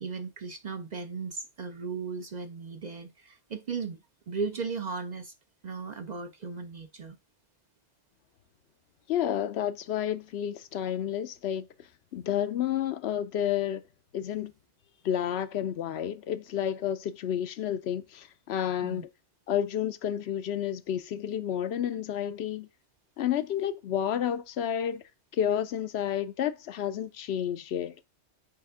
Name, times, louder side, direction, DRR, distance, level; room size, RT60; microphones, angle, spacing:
voice 1, 0.0-4.0 4.3-5.3 5.6-7.2 18.8-19.0, right 5 dB, 50° right, 0.6 m, -36 dB
voice 2, 9.1-11.7 12.1-13.8 14.1-14.5 15.0-19.1 19.5-22.7 23.2-25.0 25.3-28.0, left 10 dB, 70° left, 0.8 m, -30 dB
8.5 x 3.4 x 3.6 m
omnidirectional pair, 1.2 m